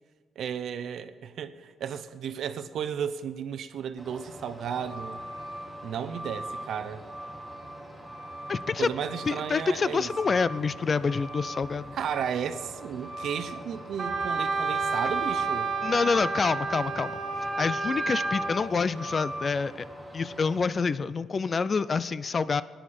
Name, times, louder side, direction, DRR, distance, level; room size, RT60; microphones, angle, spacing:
voice 1, 0.4-5.2 5.8-7.0 8.8-10.1 11.9-15.7, right 8 dB, 70° right, 0.7 m, -34 dB
Truck, 4.0-20.7, equal, 5° right, 3.8 m, -40 dB
voice 2, 8.5-8.9 9.3-11.9 15.8-17.2 17.6-19.8 20.1-22.6, left 5 dB, 40° left, 0.4 m, -27 dB
Wind instrument woodwind instrument, 14.0-18.6, right 4 dB, 40° right, 2.1 m, -30 dB
17.5 x 10.5 x 4.3 m
cardioid pair, 90°, 0 cm